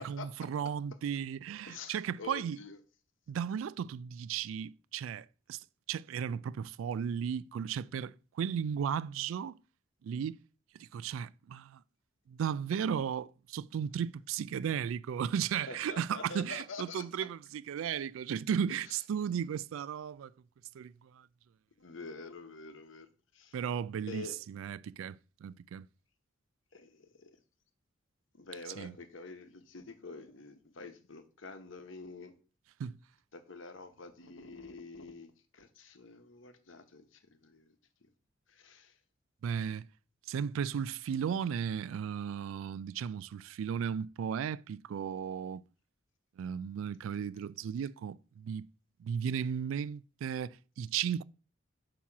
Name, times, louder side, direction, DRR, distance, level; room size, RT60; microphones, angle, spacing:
voice 1, 0.0-2.6 3.3-5.6 5.9-9.6 10.0-10.4 10.8-11.8 12.3-20.3 20.7-21.3 23.5-25.9 28.8-28.9 32.8-33.0 39.4-39.9 40.3-45.6 46.4-48.7 49.0-51.2, right 8 dB, 85° right, 0.3 m, -35 dB
voice 2, 1.7-2.8 15.7-17.0 21.8-23.1 23.3-23.5 24.1-24.3 26.7-27.3 28.4-32.3 33.3-37.0 37.4-37.7 38.5-38.9, left 4 dB, 75° left, 1.0 m, -47 dB
8.5 x 2.9 x 5.9 m
head